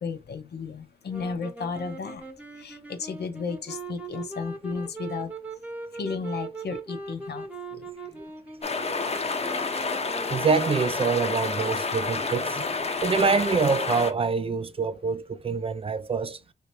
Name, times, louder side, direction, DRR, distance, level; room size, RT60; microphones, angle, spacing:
voice 1, 0.0-2.2 2.6-5.3 6.0-7.5 7.7-7.8, left 5 dB, 75° left, 0.7 m, -33 dB
sound 1, 1.1-11.1, right 3 dB, 10° right, 0.9 m, -40 dB
sound 2, 8.6-14.1, left 4 dB, 40° left, 0.7 m, -29 dB
voice 2, 10.3-16.4, right 5 dB, 35° right, 0.3 m, -26 dB
3.1 x 2.8 x 3.0 m
wide cardioid pair, 95°, 17 cm